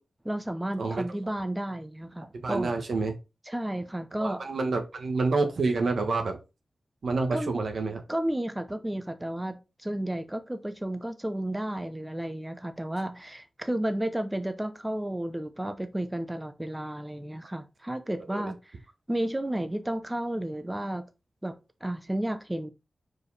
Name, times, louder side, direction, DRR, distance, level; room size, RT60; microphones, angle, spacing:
voice 1, 0.2-2.7 3.5-4.4 7.3-7.6 8.1-18.6 19.1-21.0 21.4-21.5 21.8-22.7, right 1 dB, 15° right, 0.8 m, -32 dB
voice 2, 2.4-3.2 4.2-6.4 7.0-8.0 18.3-18.5, right 3 dB, 75° right, 1.4 m, -28 dB
4.9 x 4.8 x 4.1 m
wide cardioid pair, 80°, 0 cm